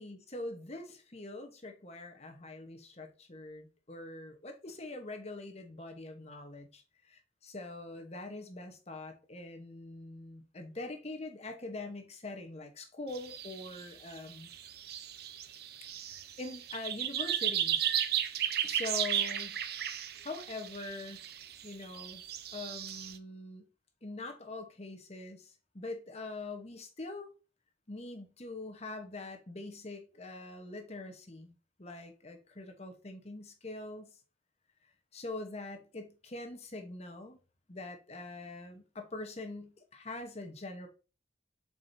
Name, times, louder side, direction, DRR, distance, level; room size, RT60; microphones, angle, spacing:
voice 1, 0.0-6.8 7.1-14.5 16.4-17.9 18.6-19.6 20.2-21.3 21.6-22.2 22.5-23.7 24.0-27.3 27.9-31.5 31.8-34.2 35.1-37.4 37.7-40.9, left 2 dB, 35° left, 1.1 m, -43 dB
sound 1, 13.1-13.8 14.1-23.2, right 10 dB, 60° right, 0.7 m, -35 dB
7.6 x 4.9 x 2.7 m
head